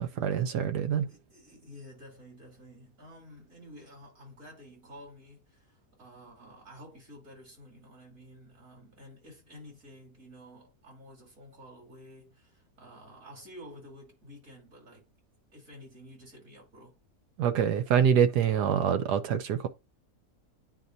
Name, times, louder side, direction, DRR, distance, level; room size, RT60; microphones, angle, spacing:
voice 1, 0.0-1.1 17.4-19.7, right 8 dB, 80° right, 1.4 m, -25 dB
voice 2, 1.0-15.1 15.5-16.9, equal, 55° right, 3.7 m, -51 dB
9.7 x 4.5 x 2.6 m
omnidirectional pair, 1.7 m